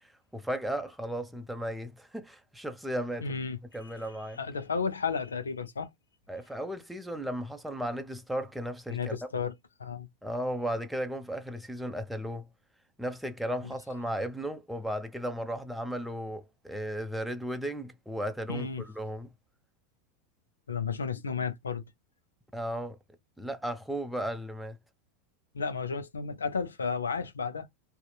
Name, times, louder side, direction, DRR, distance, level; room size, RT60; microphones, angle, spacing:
voice 1, 0.3-3.3 3.7-4.4 6.3-9.2 10.2-12.5 13.0-19.3 22.5-23.0 23.4-24.8, equal, 5° right, 0.6 m, -35 dB
voice 2, 3.2-3.6 3.8-3.9 4.4-5.9 8.9-9.5 9.8-10.1 18.5-18.8 20.7-21.9 25.5-27.7, left 5 dB, 85° left, 0.4 m, -33 dB
2.8 x 2.1 x 2.2 m
hypercardioid pair, 85°, 0 cm